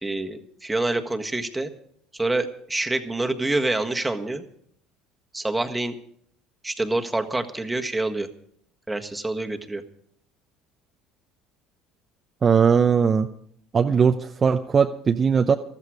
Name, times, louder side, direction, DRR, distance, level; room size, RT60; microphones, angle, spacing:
voice 1, 0.0-1.7 2.1-4.4 5.3-5.9 6.6-8.3 8.9-9.8, right 2 dB, 10° right, 5 dB, 1.6 m, -26 dB
voice 2, 12.4-13.3 13.7-15.6, right 6 dB, 35° right, 6 dB, 0.7 m, -19 dB
14.5 x 13.5 x 4.9 m, 0.67 s
hypercardioid pair, 70°, 0 cm